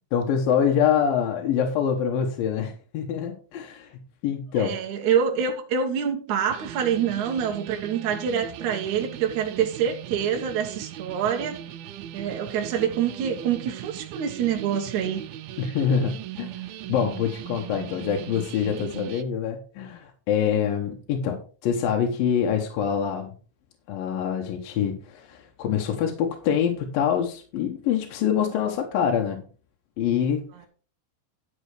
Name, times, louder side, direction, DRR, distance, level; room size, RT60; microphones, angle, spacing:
voice 1, 0.1-4.7 15.6-23.3 23.9-29.4 30.0-30.7, left 8 dB, 75° left, 2.8 m, -25 dB
voice 2, 4.5-11.6 12.1-15.2, right 8 dB, 65° right, 2.3 m, -26 dB
sound 1, 6.5-19.2, right 11 dB, 85° right, 2.6 m, -39 dB
11.5 x 5.6 x 4.9 m
omnidirectional pair, 4.2 m